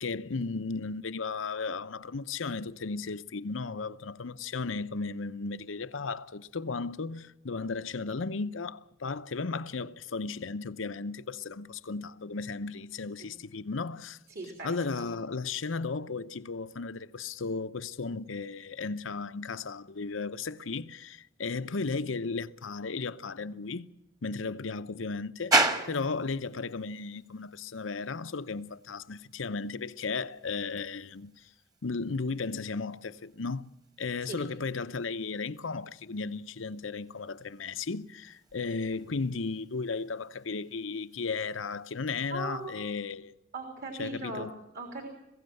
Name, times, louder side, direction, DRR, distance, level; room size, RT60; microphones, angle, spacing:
voice 1, 0.0-14.2 14.6-23.9 24.2-31.5 31.8-33.7 34.0-43.3 44.0-44.5, left 4 dB, 90° left, 0.8 m, -35 dB
voice 2, 14.3-14.7 34.2-34.4 42.3-42.7 43.5-45.1, right 2 dB, 55° right, 3.6 m, -39 dB
sound 1, 25.5-43.0, right 2 dB, 20° right, 1.6 m, -38 dB
22.0 x 16.0 x 7.8 m
head